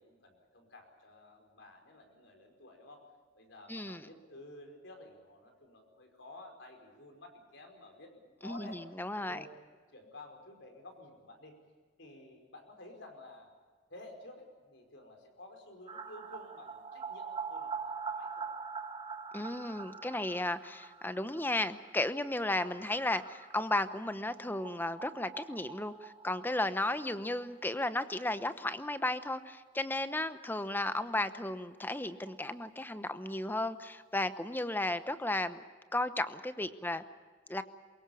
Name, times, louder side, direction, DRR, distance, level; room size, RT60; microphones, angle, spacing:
voice 1, 0.0-3.1 3.3-9.6 9.9-11.5 12.0-13.5 13.9-18.5 22.6-23.1 36.7-37.0, left 2 dB, 70° left, 4 dB, 5.0 m, -53 dB
voice 2, 3.7-4.0 8.4-9.4 19.3-35.6 35.9-37.0 37.5-37.6, left 1 dB, 10° left, 12 dB, 0.9 m, -34 dB
sound 1, 15.9-27.5 27.8-27.9 28.1-28.2 31.2-31.3 31.6-31.7 31.9-33.7 34.0-34.1, right 5 dB, 30° right, 2.1 m, -44 dB
24.0 x 22.0 x 7.1 m, 1.5 s
head